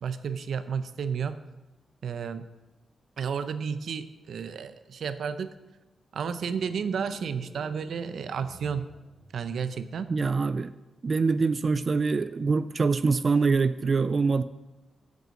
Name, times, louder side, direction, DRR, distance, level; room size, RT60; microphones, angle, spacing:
voice 1, 0.0-1.4 2.0-2.4 3.2-5.5 6.1-8.9 9.3-10.1, right 6 dB, 70° right, 11 dB, 0.6 m, -32 dB
sound 1, 6.1-9.8, right 1 dB, 20° right, 1.0 m, -49 dB
voice 2, 10.1-10.7 11.0-14.4, right 4 dB, 40° right, 12 dB, 0.3 m, -24 dB
7.8 x 7.7 x 6.4 m, 1.1 s
wide cardioid pair, 130°, 0 cm